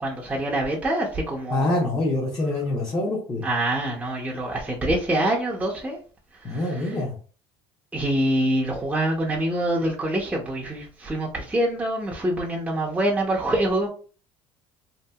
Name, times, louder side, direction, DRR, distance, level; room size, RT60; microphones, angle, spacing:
voice 1, 0.0-1.8 3.4-6.0 6.5-6.6 7.9-13.9, right 1 dB, 10° right, -3 dB, 0.6 m, -25 dB
voice 2, 1.5-3.4 6.4-7.1, left 2 dB, 30° left, -4 dB, 0.8 m, -25 dB
2.7 x 2.5 x 2.3 m, 0.39 s
cardioid pair, 110°, 12 cm